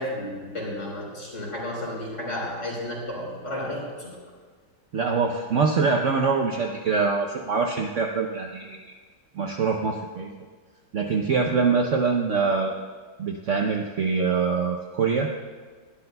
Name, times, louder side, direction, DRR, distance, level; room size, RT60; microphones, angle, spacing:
voice 1, 0.0-4.2, left 1 dB, 35° left, -4 dB, 4.3 m, -32 dB
voice 2, 4.9-8.8 9.4-10.3 10.9-12.7 13.2-15.3, right 5 dB, 75° right, 2 dB, 0.6 m, -24 dB
20.5 x 12.0 x 2.3 m, 1.5 s
omnidirectional pair, 2.2 m